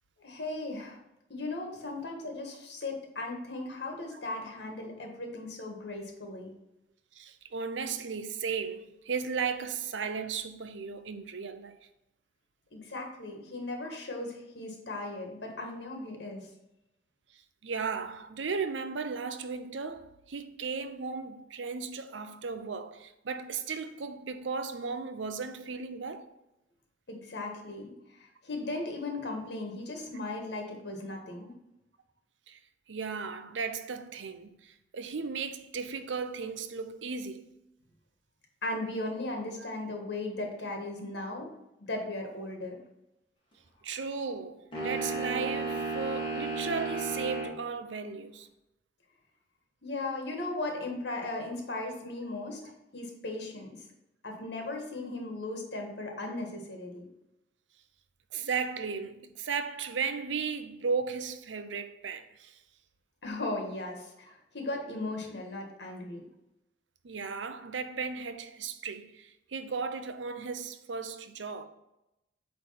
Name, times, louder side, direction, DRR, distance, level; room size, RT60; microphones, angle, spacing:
voice 1, 0.2-1.0 1.3-6.5 12.7-16.4 27.1-31.5 38.6-41.5 41.8-42.8 49.8-52.6 52.9-53.8 54.2-57.1 63.2-66.2, left 2 dB, 65° left, 1.7 m, -37 dB
voice 2, 7.1-11.8 13.8-14.0 17.6-26.3 32.5-32.6 32.9-37.5 39.6-39.7 43.8-48.5 58.3-62.6 67.0-71.7, right 5 dB, 85° right, 0.7 m, -35 dB
sound 1, 44.7-47.6, right 3 dB, 30° left, 2.2 m, -33 dB
8.4 x 3.3 x 5.7 m
head